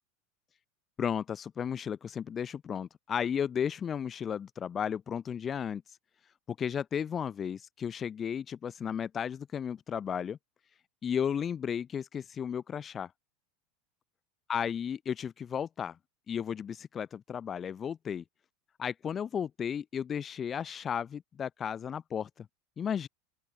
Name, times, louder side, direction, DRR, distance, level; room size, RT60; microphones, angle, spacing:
voice 1, 1.0-5.8 6.5-10.4 11.0-13.1 14.5-16.0 16.3-18.2 18.8-22.5 22.8-23.1, left 8 dB, 30° left, 7.1 m, -34 dB
open air
hypercardioid pair, 85°, 0 cm